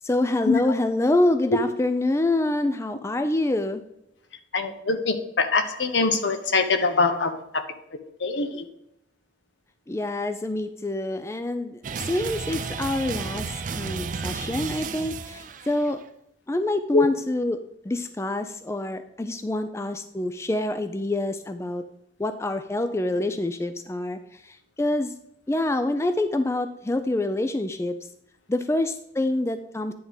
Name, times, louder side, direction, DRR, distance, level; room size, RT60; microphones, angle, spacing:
voice 1, 0.0-3.8 9.9-11.8 12.1-13.5 13.8-16.0 16.5-17.6 17.9-21.8 22.2-24.2 24.8-25.1 25.5-27.9 28.5-29.9, left 2 dB, 15° left, 8 dB, 0.4 m, -26 dB
voice 2, 4.5-7.6 8.2-8.6 16.9-17.1, left 3 dB, 75° left, 8 dB, 0.9 m, -23 dB
sound 1, 11.8-16.0, right 5 dB, 45° right, 0.5 m, -33 dB
10.0 x 3.6 x 5.5 m, 0.81 s
head